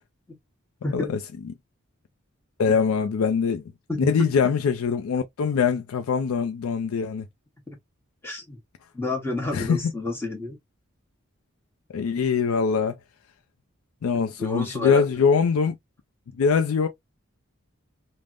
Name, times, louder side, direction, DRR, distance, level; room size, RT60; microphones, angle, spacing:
voice 1, 2.6-3.6 4.0-7.3 9.5-9.8 11.9-13.0 14.0-15.8 16.4-16.9, left 5 dB, 85° left, 0.4 m, -23 dB
voice 2, 3.9-4.3 8.2-8.6 8.9-10.6 14.4-15.1, left 3 dB, 10° left, 0.9 m, -29 dB
3.4 x 2.0 x 2.4 m
head